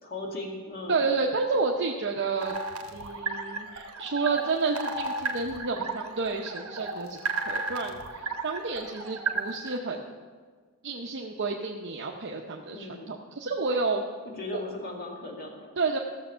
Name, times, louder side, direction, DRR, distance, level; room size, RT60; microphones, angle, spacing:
voice 1, 0.0-1.1 12.7-13.2 14.3-15.7, left 2 dB, 45° left, -1 dB, 2.2 m, -37 dB
voice 2, 0.9-2.5 2.9-7.2 7.4-10.1 10.8-14.0 14.5-14.6 15.8-16.0, right 4 dB, 55° right, 0 dB, 0.8 m, -30 dB
sound 1, 2.4-9.8, right 3 dB, 70° right, 1.1 m, -34 dB
14.5 x 6.9 x 5.6 m, 1.5 s
head